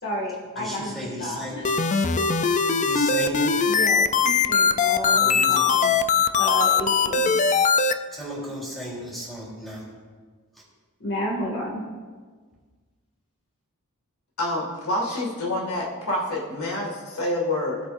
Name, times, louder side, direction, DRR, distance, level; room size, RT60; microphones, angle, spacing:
voice 1, 0.0-0.9 1.2-1.4 3.7-5.9 6.4-7.3 11.0-11.8, equal, 55° left, -2 dB, 2.3 m, -31 dB
voice 2, 0.6-2.0 2.8-3.6 5.0-5.9 8.1-9.8, equal, ahead, -6 dB, 3.8 m, -34 dB
sound 1, 1.6-7.9, left 5 dB, 35° left, 0.4 m, -20 dB
voice 3, 14.4-17.8, left 1 dB, 70° left, -2 dB, 2.2 m, -27 dB
20.0 x 8.1 x 2.6 m, 1.5 s
head